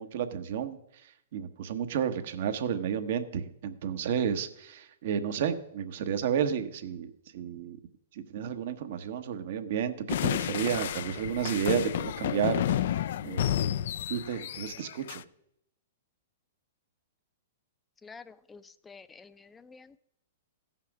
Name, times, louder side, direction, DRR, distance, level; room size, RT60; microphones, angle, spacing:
voice 1, 0.0-7.8 8.1-12.8 13.2-13.6 14.1-15.2, right 8 dB, 60° right, 9 dB, 1.1 m, -32 dB
sound 1, 10.1-15.2, left 11 dB, 65° left, 0.4 m, -31 dB
voice 2, 18.0-19.9, left 4 dB, 15° left, 14 dB, 0.6 m, -50 dB
14.5 x 5.8 x 5.9 m, 0.79 s
hypercardioid pair, 125°, 0 cm